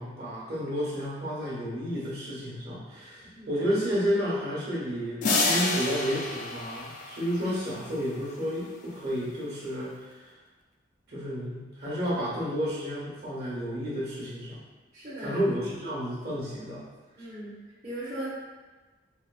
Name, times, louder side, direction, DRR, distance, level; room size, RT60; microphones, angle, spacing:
voice 1, 0.0-10.1 11.1-14.6 15.2-16.8, equal, 55° right, -7 dB, 1.1 m, -31 dB
voice 2, 3.3-3.6 14.9-15.4 17.2-17.6 17.8-18.3, right 1 dB, 35° right, -12 dB, 0.8 m, -38 dB
sound 1, 5.2-7.7, left 3 dB, 40° left, 0.3 m, -28 dB
4.1 x 2.2 x 2.3 m, 1.3 s
head